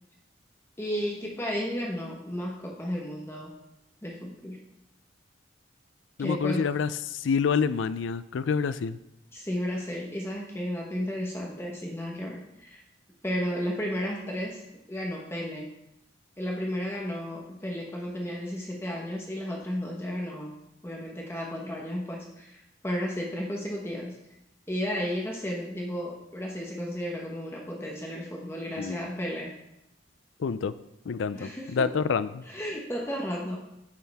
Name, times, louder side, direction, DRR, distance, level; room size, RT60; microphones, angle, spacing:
voice 1, 0.8-3.5 4.0-4.6 6.2-6.7 9.3-12.8 13.2-14.6 14.9-15.7 16.4-20.5 20.8-24.2 24.7-29.5 31.3-31.9 32.5-33.6, equal, 15° left, -2 dB, 1.1 m, -33 dB
voice 2, 6.2-9.0 28.8-29.1 30.4-30.7 31.1-32.5, left 6 dB, 75° left, 15 dB, 0.4 m, -28 dB
9.6 x 7.5 x 3.5 m, 0.86 s
head